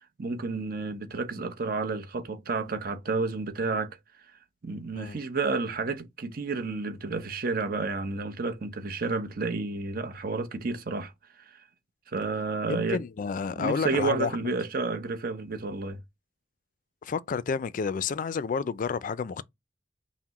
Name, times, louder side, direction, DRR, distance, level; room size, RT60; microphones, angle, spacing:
voice 1, 0.2-4.0 4.6-11.1 11.4-11.6 12.1-13.0 13.6-16.0, right 3 dB, 55° right, 0.7 m, -31 dB
voice 2, 12.7-14.5 17.0-19.4, left 5 dB, 45° left, 0.3 m, -30 dB
5.8 x 2.1 x 3.0 m
head